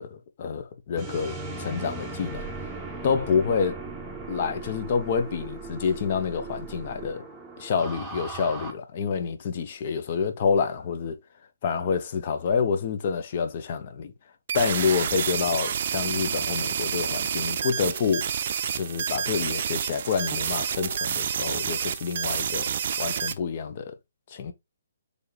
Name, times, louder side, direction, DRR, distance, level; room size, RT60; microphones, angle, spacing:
voice 1, 0.0-2.5 3.0-3.8 4.3-7.3 7.6-11.2 11.6-14.1 14.5-18.3 18.7-22.7 23.0-24.0 24.3-24.5, left 6 dB, 45° left, 0.7 m, -28 dB
sound 1, 1.0-8.7, right 3 dB, 10° right, 1.0 m, -38 dB
sound 2, 14.5-23.3, right 8 dB, 50° right, 0.4 m, -29 dB
4.6 x 3.3 x 3.2 m
figure-of-eight pair, 140°, 0 cm